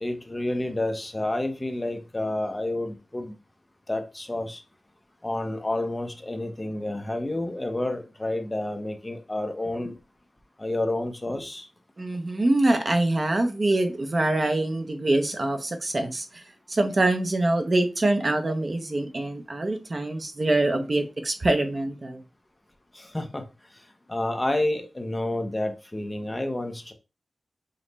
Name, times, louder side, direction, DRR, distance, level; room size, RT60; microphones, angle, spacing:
voice 1, 0.0-3.4 3.9-4.6 5.2-10.0 10.6-11.7 22.9-23.4 24.1-26.9, left 1 dB, 15° left, 0.6 m, -29 dB
voice 2, 12.0-16.4 16.7-22.2, right 2 dB, 30° right, 0.5 m, -24 dB
5.2 x 2.1 x 3.9 m
wide cardioid pair, 140°, 0 cm